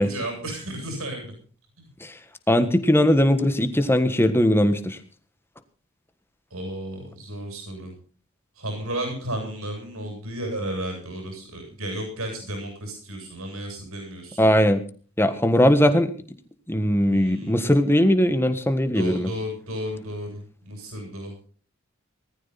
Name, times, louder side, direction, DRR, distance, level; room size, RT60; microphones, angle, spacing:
voice 1, 0.0-1.4 1.8-1.9 6.5-7.9 8.6-14.5 17.0-17.5 18.9-21.3, right 1 dB, 85° right, 3 dB, 7.8 m, -33 dB
voice 2, 2.5-5.0 14.4-14.8 15.2-16.1 16.7-19.3, equal, 10° left, 10 dB, 1.5 m, -19 dB
19.0 x 14.0 x 4.2 m, 0.41 s
head